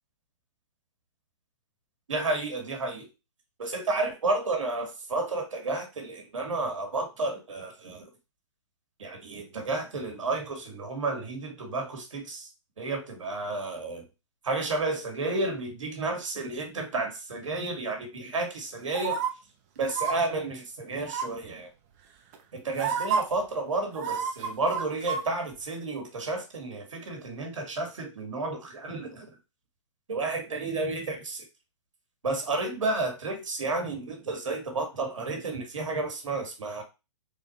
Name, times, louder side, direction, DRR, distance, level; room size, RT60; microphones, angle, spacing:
voice 1, 2.1-3.1 3.6-8.1 9.0-12.5 12.8-14.0 14.4-19.2 19.8-21.7 22.5-29.3 30.1-31.4 32.2-36.8, right 3 dB, 85° right, 4 dB, 1.7 m, -31 dB
sound 1, 18.9-19.3 19.9-20.1 21.1-21.5 22.3-22.4 22.8-23.2 24.0-25.2 25.5-25.6, right 6 dB, 30° right, 0.7 m, -29 dB
3.8 x 2.5 x 4.1 m, 0.27 s
hypercardioid pair, 150°, 16 cm